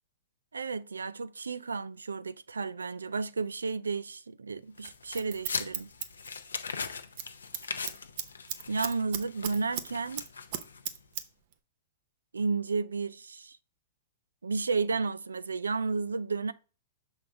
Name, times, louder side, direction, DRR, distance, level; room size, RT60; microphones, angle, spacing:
voice 1, 0.5-5.9 8.7-10.3 12.3-13.6 14.4-16.5, right 4 dB, 90° right, 0.3 m, -32 dB
sound 1, 4.8-11.0, left 5 dB, 85° left, 0.6 m, -40 dB
Scissors, 4.8-6.8 7.1-7.3 7.5-9.9 10.2-11.2 11.5-11.6, right 10 dB, 55° right, 0.8 m, -36 dB
6.1 x 3.8 x 4.7 m
hypercardioid pair, 110°, 0 cm